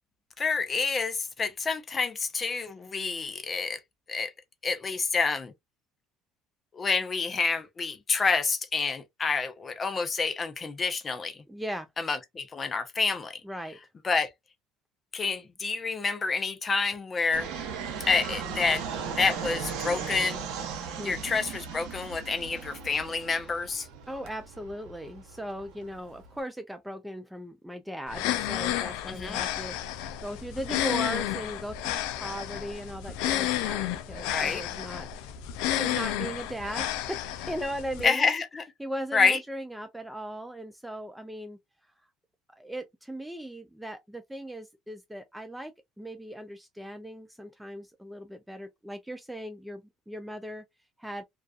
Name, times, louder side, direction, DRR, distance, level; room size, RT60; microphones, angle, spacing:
voice 1, 0.4-3.8 4.1-4.3 4.6-5.5 6.7-11.4 12.0-13.4 14.0-14.3 15.1-17.5 18.1-18.8 19.2-20.4 21.0-23.9 29.1-29.4 34.2-34.6 38.0-38.6 39.1-39.4, left 4 dB, 30° left, 0.6 m, -28 dB
voice 2, 11.5-11.9 13.4-13.8 21.0-21.2 24.1-35.1 35.8-38.3 38.8-41.6 42.5-50.6 51.0-51.2, right 1 dB, 5° right, 0.3 m, -38 dB
Fixed-wing aircraft airplane, 17.3-26.4, right 6 dB, 75° right, 0.7 m, -37 dB
sound 1, 28.1-38.1, left 12 dB, 80° left, 0.3 m, -31 dB
2.3 x 2.3 x 2.3 m
supercardioid pair, 85°, 0 cm